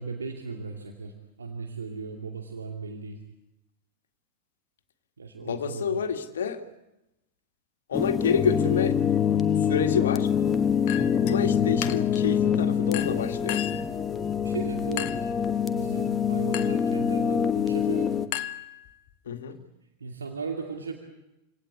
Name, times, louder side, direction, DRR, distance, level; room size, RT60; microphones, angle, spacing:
voice 1, 0.0-3.2 5.2-6.1 11.0-11.2 14.4-15.1 15.7-18.2 20.0-20.9, right 4 dB, 70° right, 2 dB, 2.5 m, -36 dB
voice 2, 5.4-6.6 7.9-9.0 9.7-10.3 11.1-13.6 19.3-19.6, left 7 dB, 65° left, 7 dB, 2.1 m, -28 dB
sound 1, 7.9-18.3, left 8 dB, 20° left, 1.1 m, -25 dB
Chink clink, 10.9-11.4 11.8-12.3 12.9-13.9 15.0-15.4 16.5-16.9 18.3-19.1, left 13 dB, 45° left, 1.1 m, -35 dB
27.0 x 17.5 x 8.4 m, 0.93 s
figure-of-eight pair, 90°, 0 cm